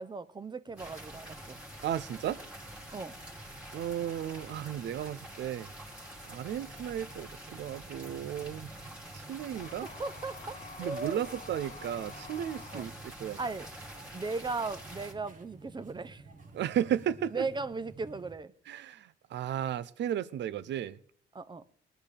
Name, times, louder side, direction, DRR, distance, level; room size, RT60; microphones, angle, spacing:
voice 1, 0.0-1.6 2.9-3.1 9.8-11.2 12.7-12.9 13.4-13.7 14.1-16.2 17.3-18.5 21.3-21.6, right 3 dB, 20° right, 14 dB, 0.7 m, -37 dB
sound 1, 0.7-18.3, right 3 dB, 45° right, 1.5 m, -52 dB
sound 2, 0.8-15.1, equal, 5° right, 2.1 m, -47 dB
voice 2, 1.8-2.4 3.7-5.7 6.3-8.8 9.1-9.9 10.8-13.4 16.5-17.4 18.7-21.0, right 10 dB, 65° right, 16 dB, 0.5 m, -34 dB
sound 3, 9.5-12.9, left 6 dB, 40° left, 0.6 m, -49 dB
19.5 x 10.0 x 3.4 m, 0.63 s
cardioid pair, 90°, 20 cm